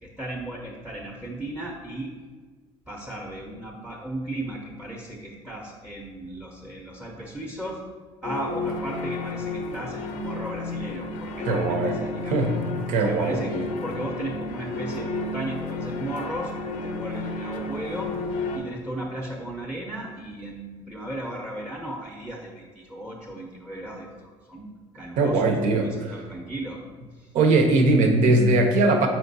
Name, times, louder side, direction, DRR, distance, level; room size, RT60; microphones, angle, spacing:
voice 1, 0.0-2.1 2.9-7.8 8.2-12.5 13.0-13.5 13.8-18.1 18.5-25.5 25.8-26.8 27.1-27.3, right 1 dB, 5° right, -1 dB, 0.6 m, -36 dB
sound 1, 8.2-18.6, left 3 dB, 75° left, 0.5 m, -32 dB
voice 2, 11.5-12.0 12.3-12.5 12.9-13.6 25.2-26.1 27.3-29.1, right 2 dB, 75° right, 4 dB, 0.7 m, -20 dB
4.7 x 4.3 x 2.6 m, 1.4 s
supercardioid pair, 85°, 13 cm